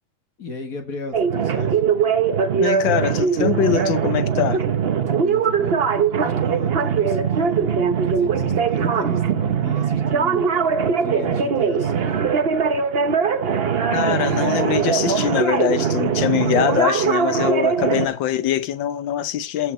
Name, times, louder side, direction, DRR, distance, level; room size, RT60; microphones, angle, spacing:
voice 1, 0.4-1.8 5.1-5.8 6.1-10.4 10.8-12.2 18.0-18.2, left 4 dB, 45° left, 1.9 m, -36 dB
sound 1, 1.1-18.1, right 6 dB, 85° right, 0.5 m, -21 dB
voice 2, 2.6-4.6 13.9-19.7, left 10 dB, 70° left, 1.4 m, -23 dB
14.5 x 5.6 x 4.3 m
omnidirectional pair, 2.3 m